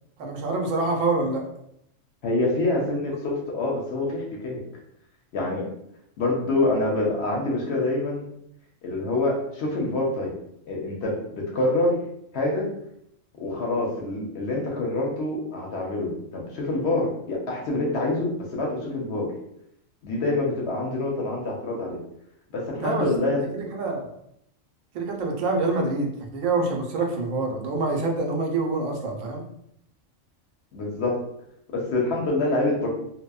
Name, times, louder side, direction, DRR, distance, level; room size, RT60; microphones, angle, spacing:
voice 1, 0.2-1.4 22.8-23.1 23.5-24.1 24.9-29.4, right 3 dB, 85° right, 1 dB, 1.0 m, -26 dB
voice 2, 2.2-4.6 5.3-5.7 6.2-8.2 8.8-10.3 10.6-12.0 12.3-12.7 13.3-19.3 20.0-22.0 22.5-23.5 30.7-31.2 31.7-32.9, left 2 dB, 65° left, -1 dB, 0.8 m, -26 dB
2.9 x 2.0 x 2.2 m, 0.75 s
omnidirectional pair, 1.3 m